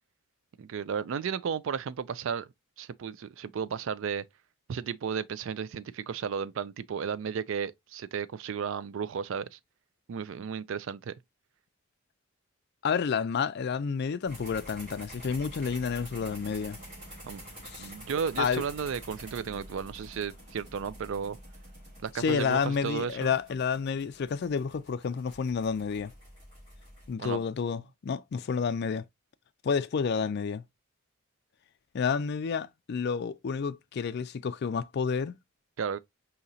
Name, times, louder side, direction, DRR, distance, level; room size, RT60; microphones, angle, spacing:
voice 1, 0.6-2.5 2.8-4.2 4.7-9.6 10.1-11.1 17.2-17.4 17.8-21.4 22.0-23.3 27.2-27.4 35.8-36.0, right 6 dB, 60° right, 0.3 m, -34 dB
voice 2, 12.8-16.8 17.6-17.9 18.4-18.6 22.2-26.1 27.1-29.0 29.6-30.6 31.9-35.3, left 6 dB, 50° left, 0.3 m, -30 dB
sound 1, 14.2-27.1, equal, 35° right, 2.6 m, -48 dB
4.9 x 2.8 x 2.7 m
head